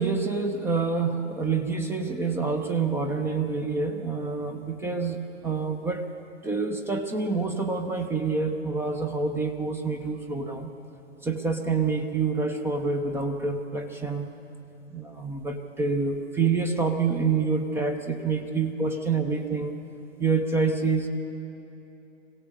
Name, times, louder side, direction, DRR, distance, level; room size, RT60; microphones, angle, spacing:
voice 1, 0.0-6.1 6.4-10.7 11.2-14.3 14.9-19.8 20.2-21.1, right 4 dB, 5° right, 5 dB, 0.6 m, -27 dB
24.5 x 17.0 x 6.7 m, 3.0 s
figure-of-eight pair, 110°, 37 cm